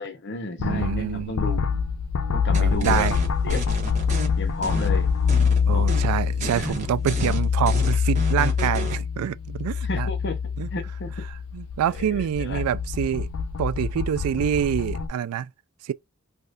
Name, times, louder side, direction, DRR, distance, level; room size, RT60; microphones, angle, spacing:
voice 1, 0.0-1.7 2.3-3.1 3.4-3.9 4.4-5.1 5.7-5.9 6.4-6.7 9.8-10.3 10.6-11.1 11.9-12.6, left 3 dB, 55° left, 0.8 m, -32 dB
sound 1, 0.6-15.1, left 6 dB, 80° left, 0.5 m, -25 dB
voice 2, 0.6-1.4 2.5-3.2 5.7-10.1 10.6-10.7 11.5-13.3 13.6-15.5 15.8-15.9, right 9 dB, 90° right, 0.3 m, -26 dB
sound 2, 2.5-4.3 4.6-5.6 5.9-6.1 6.4-9.0, right 1 dB, 35° right, 1.0 m, -32 dB
3.4 x 2.6 x 2.3 m
head